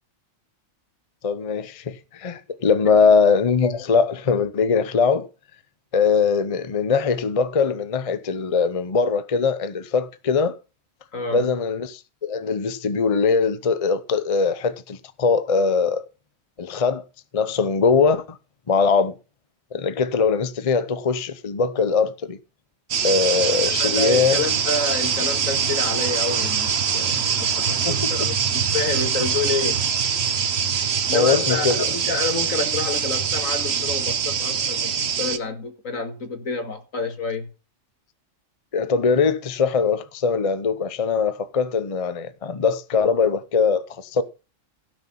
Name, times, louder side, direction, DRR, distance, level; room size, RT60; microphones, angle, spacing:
voice 1, 1.2-5.3 5.9-10.5 11.3-16.0 16.6-17.0 17.3-18.4 18.7-19.1 19.7-22.4 23.0-24.4 27.8-27.9 31.1-31.9 38.7-44.2, left 5 dB, 30° left, 0.7 m, -21 dB
voice 2, 11.1-11.5 23.6-29.9 31.1-37.5, left 3 dB, 75° left, 2.4 m, -29 dB
sound 1, 22.9-35.4, right 7 dB, 55° right, 1.2 m, -23 dB
16.5 x 6.3 x 5.8 m
omnidirectional pair, 1.4 m